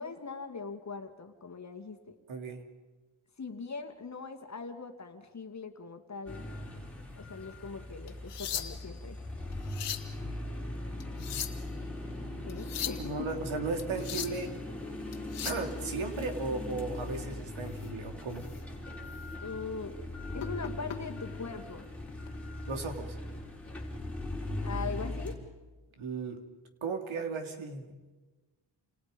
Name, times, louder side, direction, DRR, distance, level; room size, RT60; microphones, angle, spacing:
voice 1, 0.0-2.2 3.4-6.5 7.2-9.2 12.4-13.3 19.4-20.0 20.3-21.9 24.6-25.4, left 4 dB, 35° left, 6 dB, 2.3 m, -41 dB
voice 2, 2.3-2.7 13.0-14.5 15.4-18.5 22.7-23.2 26.0-26.4 26.8-27.9, right 4 dB, 70° right, 5 dB, 3.1 m, -36 dB
sound 1, 6.3-25.3, left 1 dB, 5° left, 4.7 m, -39 dB
sound 2, 8.1-9.0 9.5-10.1 11.0-11.7 12.5-13.0 13.8-14.4 15.1-15.7 17.7-17.9 18.4-18.6 19.1-19.2 20.4-21.0 22.1-22.3, left 10 dB, 90° left, 1.9 m, -38 dB
29.0 x 28.0 x 5.3 m, 1.2 s
cardioid pair, 115°, 50 cm